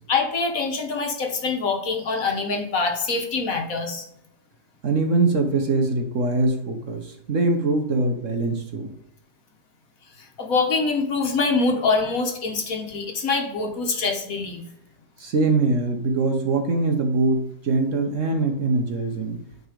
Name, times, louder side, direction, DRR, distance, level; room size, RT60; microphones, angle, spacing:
voice 1, 0.1-4.0 10.4-14.6, left 4 dB, 55° left, 3 dB, 1.5 m, -24 dB
voice 2, 4.8-8.9 15.2-19.4, right 3 dB, 55° right, 4 dB, 1.2 m, -23 dB
9.4 x 3.9 x 5.0 m, 0.78 s
omnidirectional pair, 1.8 m